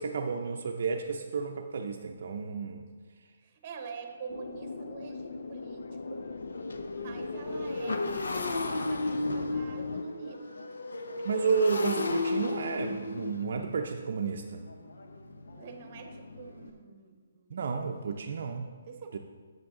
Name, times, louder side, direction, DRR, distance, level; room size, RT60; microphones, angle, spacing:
voice 1, 0.0-2.9 11.2-14.7 17.5-18.7 19.1-19.2, right 5 dB, 55° right, 3 dB, 0.5 m, -31 dB
voice 2, 3.4-6.2 6.9-10.4 15.5-18.0 18.8-19.2, right 5 dB, 30° right, 5 dB, 1.0 m, -46 dB
Motorcycle, 4.1-4.2 4.7-4.8 5.1-16.7, left 2 dB, 85° left, 0.9 m, -35 dB
sound 1, 4.3-10.0, left 4 dB, 65° left, 0.4 m, -40 dB
8.7 x 8.0 x 3.8 m, 1.5 s
hypercardioid pair, 170°, 0 cm